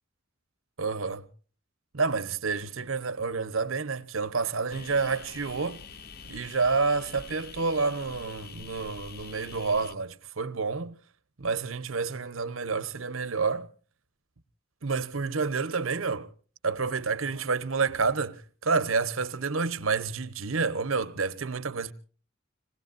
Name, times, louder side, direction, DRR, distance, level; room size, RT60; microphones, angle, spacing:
voice 1, 0.8-1.3 1.9-5.8 6.2-11.0 11.4-13.7 14.8-16.3 16.6-21.9, right 4 dB, 80° right, 1.1 m, -29 dB
sound 1, 4.7-9.9, left 5 dB, 50° left, 0.8 m, -45 dB
27.0 x 20.0 x 2.6 m
head